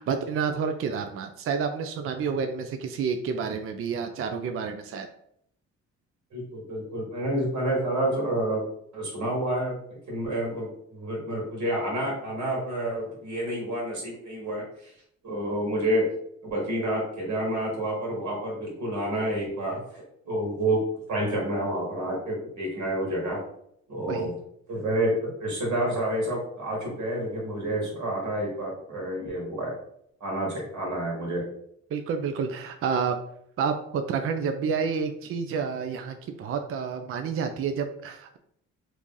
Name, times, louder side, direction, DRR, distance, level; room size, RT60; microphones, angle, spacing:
voice 1, 0.0-5.1 24.1-24.3 31.9-33.2 33.6-38.4, right 6 dB, 45° right, 6 dB, 0.4 m, -29 dB
voice 2, 6.3-8.6 8.9-9.7 10.1-14.9 15.2-16.0 16.4-20.8 21.1-23.4 23.9-24.3 24.7-29.7 30.2-31.4, right 1 dB, 70° right, -3 dB, 1.4 m, -29 dB
3.0 x 2.6 x 3.7 m, 0.70 s
cardioid pair, 90°, 30 cm